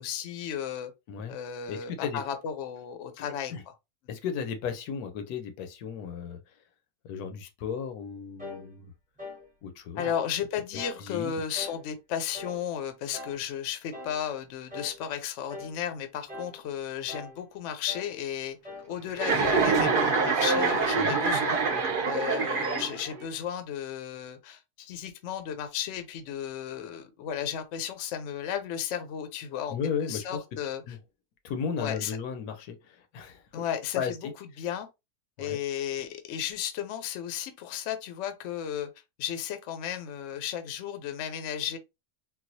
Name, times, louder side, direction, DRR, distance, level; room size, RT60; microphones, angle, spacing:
voice 1, 0.0-0.9 1.3-3.5 9.9-18.6 18.9-21.6 22.1-30.8 31.8-32.2 33.5-34.1 34.6-34.9 35.4-38.9 39.2-41.8, left 9 dB, 65° left, 0.8 m, -34 dB
voice 2, 1.7-2.2 3.2-3.6 4.1-6.4 7.0-8.9 9.6-10.1 11.0-11.3 21.0-21.2 29.7-30.4 30.9-31.0 31.4-33.5 33.9-34.3 35.4-35.6, left 6 dB, 80° left, 1.1 m, -35 dB
sound 1, 8.4-8.7 9.2-9.5 10.0-10.3 10.8-11.0 11.5-11.9 12.3-12.6 13.1-13.4 13.9-14.2 14.7-15.0 15.5-15.8 16.3-16.6 17.1-17.4 17.9-18.1 18.6-18.9 19.4-19.7 20.2-20.5, left 2 dB, 5° right, 0.8 m, -42 dB
Chuckle chortle, 19.2-23.2, right 4 dB, 60° right, 0.5 m, -25 dB
4.0 x 2.3 x 2.6 m
omnidirectional pair, 1.6 m